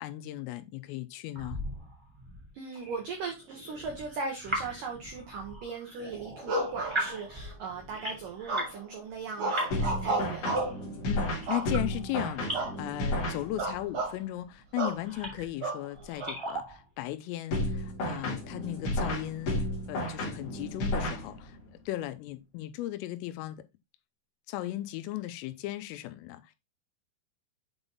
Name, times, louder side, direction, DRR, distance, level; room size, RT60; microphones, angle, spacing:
voice 1, 0.0-1.6 11.1-19.6 19.9-23.6 24.5-26.6, left 15 dB, 90° left, 3.3 m, -36 dB
sound 1, 1.3-8.8 9.1-12.7 13.5-14.1 14.7-15.6 16.0-16.9, right 1 dB, 15° right, 1.2 m, -40 dB
voice 2, 2.5-10.6, right 4 dB, 90° right, 1.9 m, -39 dB
sound 2, 6.5-7.5 8.5-8.9 9.4-10.8 11.5-12.1 12.5-12.8 13.1-13.2 13.6-14.2 14.8-15.0 15.6-16.3, right 2 dB, 55° right, 2.0 m, -32 dB
sound 3, 9.7-13.9 17.5-21.7, left 1 dB, 55° left, 1.7 m, -33 dB
8.0 x 3.9 x 3.8 m
omnidirectional pair, 5.8 m